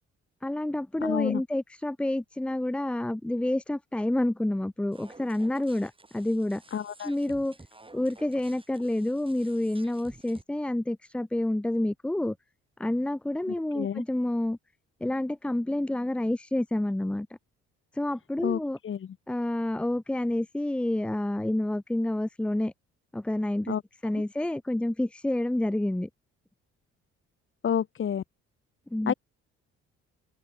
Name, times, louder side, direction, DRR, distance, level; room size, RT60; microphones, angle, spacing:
voice 1, 0.4-6.6 7.0-7.6 7.9-12.4 12.8-14.6 15.0-17.3 17.9-18.8 19.3-22.7 23.1-23.7 24.0-26.1 28.9-29.1, left 1 dB, 5° left, 0.4 m, -28 dB
voice 2, 1.0-1.4 6.7-7.1 13.7-14.0 18.4-19.1 23.7-23.8 24.1-24.2 27.6-28.2 29.1-29.2, left 8 dB, 40° left, 1.0 m, -29 dB
sound 1, 4.9-10.4, right 2 dB, 15° right, 5.1 m, -53 dB
supercardioid pair, 70°, 30 cm